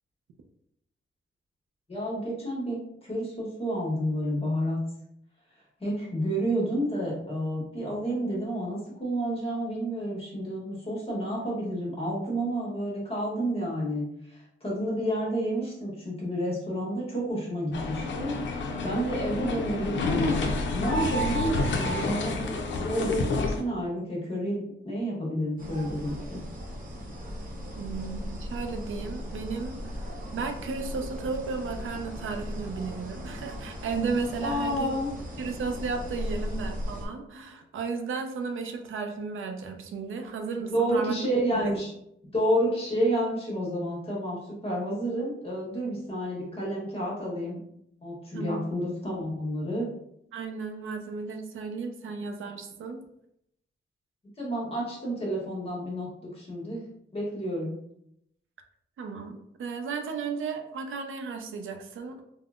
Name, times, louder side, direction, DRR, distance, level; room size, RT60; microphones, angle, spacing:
voice 1, 1.9-4.8 5.5-20.4 20.7-22.5 22.8-26.4 34.4-35.1 40.6-41.9 42.2-47.6 48.0-49.9 54.4-56.1 56.3-56.8 57.1-57.7, equal, 30° left, -4 dB, 1.0 m, -30 dB
sound 1, 17.7-23.6, left 2 dB, 65° left, 0.4 m, -29 dB
sound 2, 25.6-37.1, equal, 45° right, 0.6 m, -37 dB
voice 2, 27.7-29.8 30.3-35.0 35.4-41.1 41.5-41.7 48.3-48.7 50.3-53.1 59.0-62.2, right 4 dB, 90° right, 5 dB, 0.4 m, -34 dB
3.5 x 2.0 x 2.4 m, 0.76 s
wide cardioid pair, 135°, 20 cm